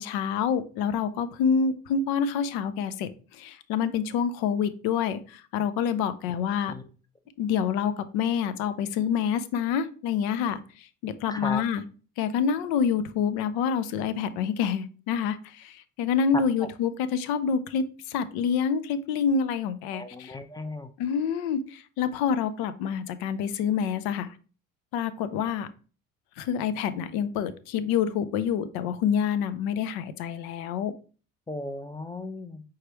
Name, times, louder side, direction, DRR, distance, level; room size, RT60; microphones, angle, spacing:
voice 1, 0.0-6.7 7.4-11.8 12.2-20.4 21.0-24.3 24.9-25.7 26.4-30.9, left 7 dB, 65° left, 12 dB, 0.6 m, -27 dB
voice 2, 11.3-11.6 16.6-16.7 19.9-20.9 31.5-32.6, left 2 dB, 10° left, 9 dB, 0.6 m, -36 dB
4.7 x 3.5 x 2.9 m, 0.37 s
hypercardioid pair, 60°, 40 cm